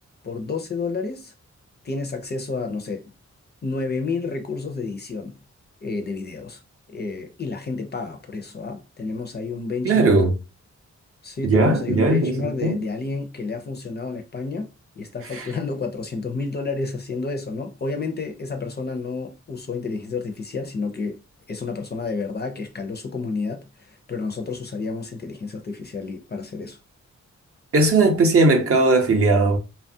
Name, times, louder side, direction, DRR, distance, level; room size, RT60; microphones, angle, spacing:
voice 1, 0.2-1.3 1.8-3.1 3.6-5.4 5.8-6.6 6.9-10.1 11.2-14.7 15.0-21.2 21.5-26.8, left 4 dB, 35° left, 0.4 m, -30 dB
voice 2, 9.8-10.3 11.4-12.8 15.3-15.5 27.7-29.6, right 2 dB, 50° right, 0.6 m, -18 dB
2.9 x 2.2 x 2.6 m
wide cardioid pair, 165°, 29 cm